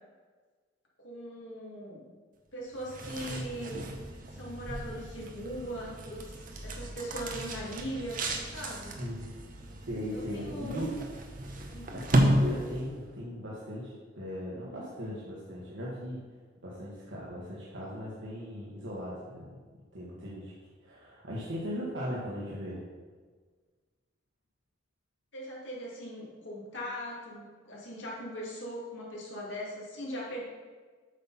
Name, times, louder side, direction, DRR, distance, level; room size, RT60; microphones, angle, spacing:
voice 1, 1.0-2.0 2.5-3.8 4.3-9.0 10.1-10.8 11.7-12.0 25.3-30.4, equal, 85° left, -4 dB, 2.4 m, -40 dB
sound 1, 2.7-13.1, right 1 dB, 45° right, 0.9 m, -33 dB
voice 2, 9.0-9.5 9.9-10.9 11.9-16.2 16.6-19.6 19.9-20.5 20.8-22.8, equal, 90° right, -6 dB, 1.5 m, -38 dB
8.1 x 5.8 x 4.2 m, 1.5 s
head